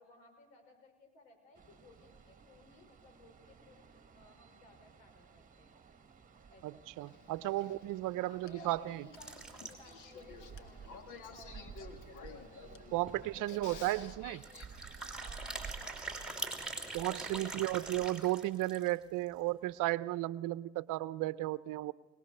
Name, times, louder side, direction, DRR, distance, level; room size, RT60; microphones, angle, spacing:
voice 1, 0.0-5.8 6.5-6.9 8.1-14.3 15.0-18.1, left 2 dB, 80° left, 4 dB, 5.6 m, -59 dB
sound 1, 1.5-18.1, right 6 dB, 25° right, 2.0 m, -54 dB
voice 2, 6.6-9.0 12.9-14.4 16.9-21.9, right 17 dB, 60° right, 17 dB, 0.8 m, -34 dB
Male speech man speaking / Female speech woman speaking / Conversation, 7.0-14.6, left 6 dB, 55° left, 1.9 m, -53 dB
sound 2, 9.2-10.1 10.6-10.7 10.8-10.9 11.4-11.5 12.7-12.8 13.1-13.3 14.4-19.0, right 3 dB, ahead, 3.2 m, -43 dB
22.0 x 20.5 x 6.7 m, 1.1 s
supercardioid pair, 85°, 35 cm